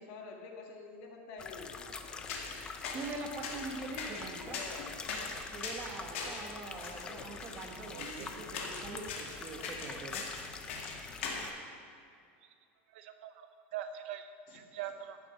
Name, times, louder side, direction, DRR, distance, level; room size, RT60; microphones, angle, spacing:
voice 1, 0.0-2.1 4.4-5.1 6.7-7.4 14.5-14.6, left 4 dB, 40° left, 1 dB, 1.6 m, -48 dB
sound 1, 1.4-11.5, left 5 dB, 10° left, 0.4 m, -46 dB
sound 2, 2.0-11.5, left 4 dB, 75° left, 2.1 m, -42 dB
voice 2, 2.9-4.6 5.5-10.2, right 3 dB, 20° right, 2 dB, 1.0 m, -43 dB
voice 3, 7.8-8.5 10.9-11.0 12.4-12.5 12.9-15.2, right 10 dB, 60° right, 8 dB, 0.7 m, -44 dB
14.0 x 7.2 x 5.7 m, 2.4 s
supercardioid pair, 180°, 7 cm